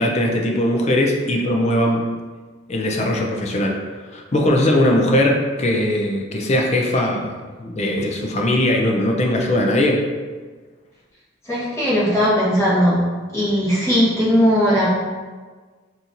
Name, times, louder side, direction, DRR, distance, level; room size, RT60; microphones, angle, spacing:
voice 1, 0.0-2.1 2.7-3.8 4.1-10.0, left 1 dB, 35° left, 1 dB, 0.4 m, -20 dB
voice 2, 11.4-13.0 13.3-14.9, equal, 15° left, -9 dB, 1.2 m, -18 dB
4.2 x 2.7 x 2.5 m, 1.4 s
head